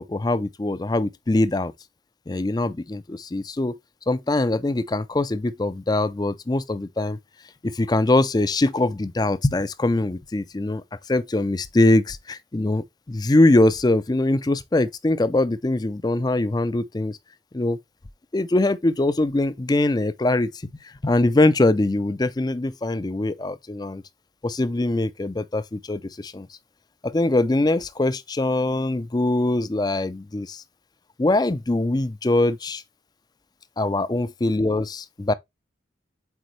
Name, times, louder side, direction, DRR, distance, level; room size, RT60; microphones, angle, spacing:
voice 1, 0.0-1.7 2.3-3.7 4.1-7.2 7.6-17.2 17.5-17.8 18.3-24.0 24.4-26.5 27.0-30.6 31.2-32.8 33.8-35.3, left 2 dB, 20° left, 0.4 m, -22 dB
8.1 x 4.2 x 3.1 m
head